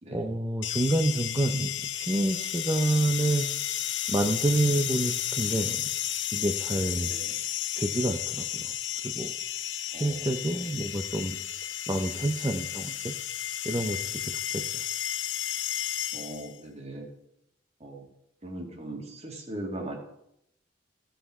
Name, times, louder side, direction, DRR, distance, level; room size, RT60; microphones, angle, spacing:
voice 1, 0.1-3.5 4.1-5.9 6.3-7.1 7.8-8.8 9.0-9.3 10.0-11.4 11.9-13.1 13.6-14.8, right 1 dB, 20° right, 4 dB, 0.6 m, -28 dB
sound 1, 0.6-16.6, left 11 dB, 70° left, 0.7 m, -33 dB
voice 2, 7.0-7.3 9.9-10.3 10.5-10.6 16.1-17.1 17.8-18.0 18.4-20.0, right 1 dB, 35° right, 1 dB, 2.2 m, -39 dB
15.5 x 5.7 x 4.8 m, 0.77 s
head